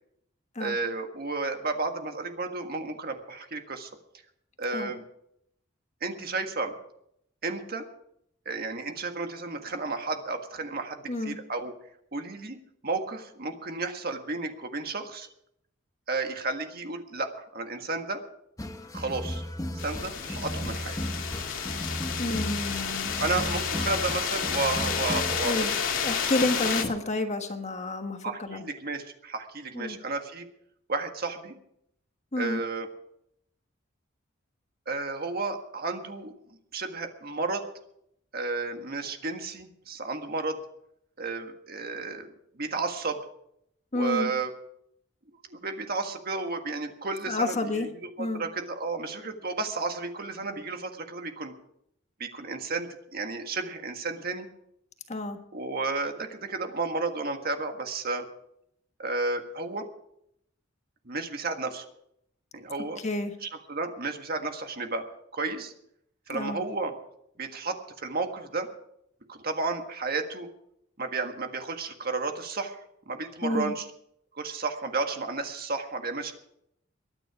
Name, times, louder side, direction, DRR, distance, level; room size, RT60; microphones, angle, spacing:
voice 1, 0.6-3.9 4.6-5.0 6.0-6.7 7.4-7.9 8.4-11.7 12.1-12.6 12.8-15.3 16.1-18.2 18.9-19.5 19.7-21.0 23.2-25.8 26.7-26.8 28.2-30.5 30.9-31.6 32.4-32.9 34.9-36.3 36.7-37.7 38.3-40.6 41.2-43.2 43.9-44.5 45.5-47.9 48.2-51.5 52.2-54.5 55.5-58.2 59.0-59.9 61.0-61.9 62.5-63.0 63.4-65.0 65.3-65.7 66.3-66.9 67.4-68.7 69.3-70.5 71.0-72.8 73.1-73.9 74.3-76.3, right 3 dB, 50° right, 5 dB, 1.7 m, -32 dB
sound 1, 18.6-25.5, left 1 dB, 15° left, 0.9 m, -35 dB
sound 2, 19.8-26.8, left 6 dB, 75° left, 2.2 m, -31 dB
voice 2, 22.2-23.1 25.4-25.7 26.0-28.6 29.7-30.0 32.3-32.6 43.9-44.3 47.3-47.9 48.2-48.4 55.1-55.4 63.0-63.3 66.3-66.6 73.4-73.7, left 2 dB, 35° left, 6 dB, 1.4 m, -30 dB
22.0 x 9.8 x 4.9 m, 0.74 s
head